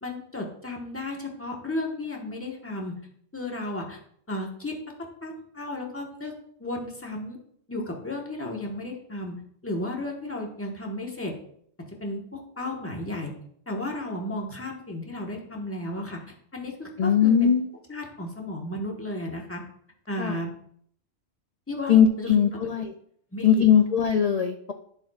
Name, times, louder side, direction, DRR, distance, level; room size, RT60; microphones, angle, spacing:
voice 1, 0.0-3.0 3.3-4.0 4.3-6.3 6.6-7.4 7.7-9.3 9.6-11.3 12.0-13.3 13.7-17.5 17.9-19.6 20.1-20.5 21.7-22.3 23.3-23.6, left 1 dB, 10° left, 0 dB, 1.2 m, -34 dB
voice 2, 17.0-17.7 20.2-20.4 21.9-22.9 23.4-24.7, left 8 dB, 70° left, 6 dB, 0.3 m, -20 dB
10.5 x 6.9 x 2.4 m, 0.65 s
omnidirectional pair, 1.3 m